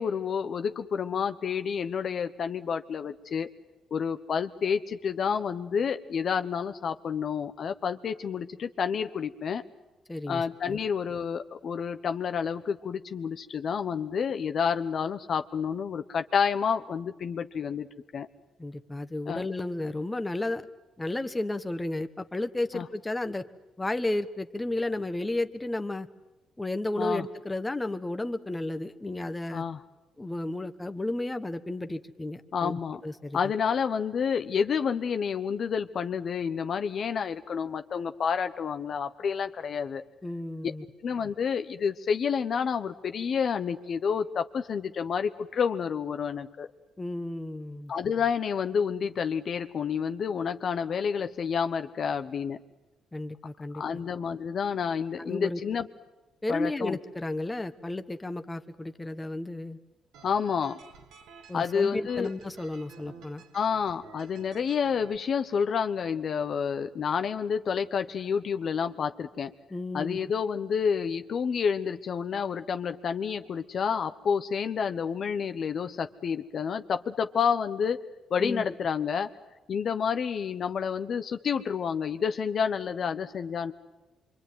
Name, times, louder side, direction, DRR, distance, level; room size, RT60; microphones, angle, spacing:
voice 1, 0.0-3.5 3.9-9.6 10.3-17.9 18.1-18.3 19.3-19.5 22.7-22.9 27.0-27.2 29.5-29.8 32.5-33.0 33.3-40.0 41.0-46.7 47.9-52.6 53.7-55.9 56.5-57.0 60.2-60.8 61.5-62.3 63.5-69.5 69.9-78.0 78.3-79.3 79.7-83.7, left 6 dB, 55° left, 9 dB, 1.0 m, -29 dB
voice 2, 10.1-10.8 18.6-20.7 21.0-23.4 23.8-26.1 26.6-29.6 30.2-33.5 40.2-40.8 47.0-47.9 53.1-54.0 55.2-55.6 56.4-59.8 61.5-63.4 69.7-70.2 78.4-78.6, left 2 dB, 15° left, 8 dB, 1.3 m, -33 dB
sound 1, 60.1-65.2, right 6 dB, 85° right, 2.1 m, -52 dB
25.5 x 24.5 x 9.4 m, 1.0 s
cardioid pair, 90°, 0 cm